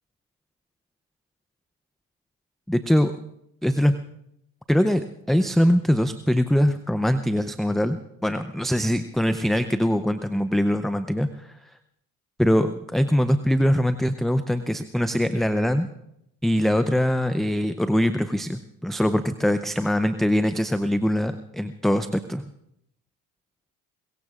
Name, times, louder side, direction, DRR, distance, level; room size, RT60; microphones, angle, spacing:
voice 1, 2.7-3.1 3.6-3.9 4.7-11.6 12.4-15.9 16.4-22.5, equal, ahead, 10 dB, 0.6 m, -22 dB
23.0 x 22.0 x 2.5 m, 0.77 s
supercardioid pair, 80°, 41 cm